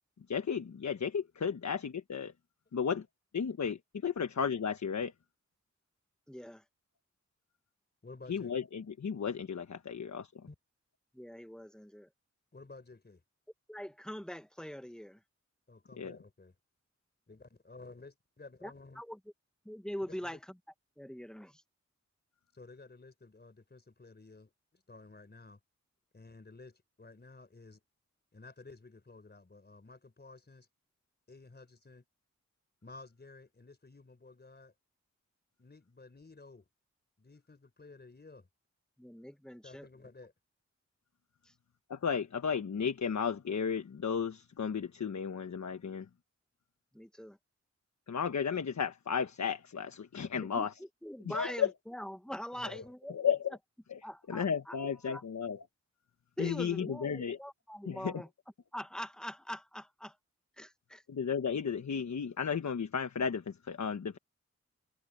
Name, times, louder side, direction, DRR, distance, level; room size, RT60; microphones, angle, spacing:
voice 1, 0.3-2.3 2.7-3.0 3.3-5.1 8.3-10.3 16.0-16.2 41.9-46.1 48.1-50.7 51.2-51.7 52.7-52.8 53.1-53.6 53.9-54.0 54.3-55.6 56.4-57.4 57.8-58.2 61.1-64.2, left 6 dB, 70° left, 1.3 m, -34 dB
voice 2, 6.3-6.6 11.1-12.1 13.7-15.2 18.6-18.7 19.0-19.2 19.7-20.4 21.0-21.6 39.0-39.9 46.9-47.4 50.3-53.1 54.0-54.8 55.0-55.2 56.4-58.3 58.7-60.1 60.6-61.0, equal, 5° left, 1.6 m, -43 dB
voice 3, 8.0-8.5 10.5-10.6 12.5-13.2 15.7-16.5 17.3-19.0 20.0-20.4 22.5-25.6 26.1-27.8 28.3-30.7 31.3-32.0 32.8-34.7 35.6-36.7 37.2-38.5 39.6-40.3 52.5-52.9, left 3 dB, 35° left, 4.5 m, -53 dB
wide cardioid pair, 80°, 29 cm